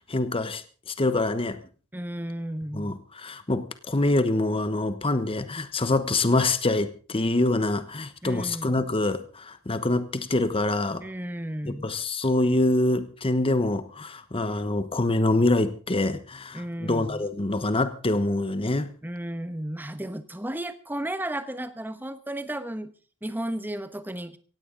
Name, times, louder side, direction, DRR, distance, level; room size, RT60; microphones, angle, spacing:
voice 1, 0.1-1.6 2.7-11.0 11.6-18.9, left 2 dB, 25° left, 1.1 m, -25 dB
voice 2, 1.9-3.0 8.2-8.8 11.0-11.9 16.5-17.2 19.0-22.9 23.2-24.4, right 1 dB, 10° right, 1.1 m, -33 dB
17.0 x 16.0 x 3.9 m
head